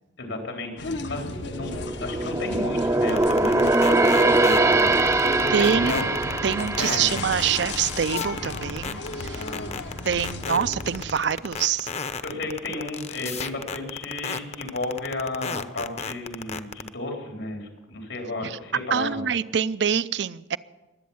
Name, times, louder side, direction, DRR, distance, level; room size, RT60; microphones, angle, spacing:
voice 1, 0.2-1.7 2.0-6.1 6.7-7.1 9.3-9.8 10.5-10.6 12.2-19.2, left 2 dB, 90° left, 3.8 m, -33 dB
sound 1, 0.8-11.0, left 3 dB, 65° left, 0.9 m, -35 dB
sound 2, 1.4-8.9 9.3-9.5 10.1-10.8 11.1-11.2, right 2 dB, 15° right, 0.5 m, -23 dB
sound 3, 3.1-16.9, left 5 dB, 35° left, 0.7 m, -32 dB
voice 2, 5.5-6.0 6.4-9.5 10.0-11.9 18.4-18.6 18.9-20.6, right 7 dB, 65° right, 0.5 m, -25 dB
22.0 x 8.5 x 7.1 m
head